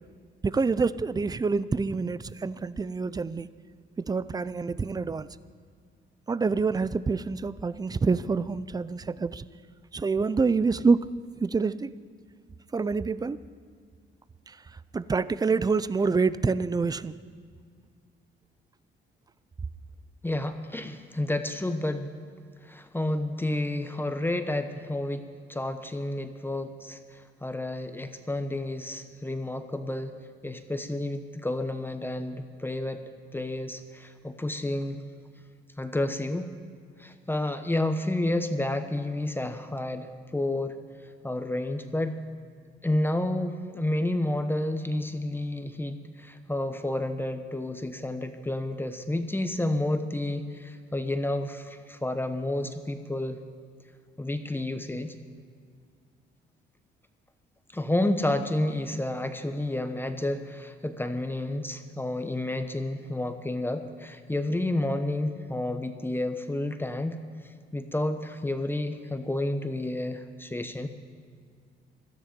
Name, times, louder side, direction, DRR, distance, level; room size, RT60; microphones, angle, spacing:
voice 1, 0.4-3.5 4.1-5.3 6.3-9.4 9.9-11.0 11.4-11.9 12.7-13.4 14.9-17.1, right 4 dB, 20° right, 17 dB, 0.4 m, -26 dB
voice 2, 20.2-22.1 22.6-30.1 30.4-33.0 33.3-35.0 35.8-36.5 37.0-40.8 41.2-42.2 42.8-53.4 54.2-55.2 57.7-67.2 67.7-70.9, left 1 dB, 10° left, 8 dB, 0.9 m, -30 dB
17.0 x 13.5 x 5.2 m, 2.1 s
cardioid pair, 90°, 20 cm